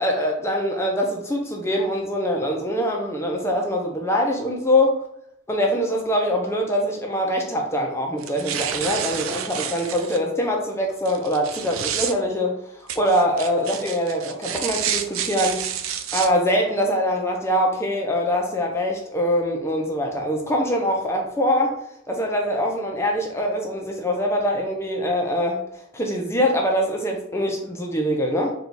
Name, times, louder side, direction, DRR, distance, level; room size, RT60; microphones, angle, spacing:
voice 1, 0.0-5.0 5.5-12.5 13.0-15.6 16.1-21.8 22.1-25.6 25.9-28.5, equal, 10° left, 1 dB, 0.4 m, -23 dB
sound 1, 8.2-10.2 11.0-12.1 12.9-16.3, right 9 dB, 70° right, 0.4 m, -29 dB
3.9 x 2.3 x 4.4 m, 0.76 s
head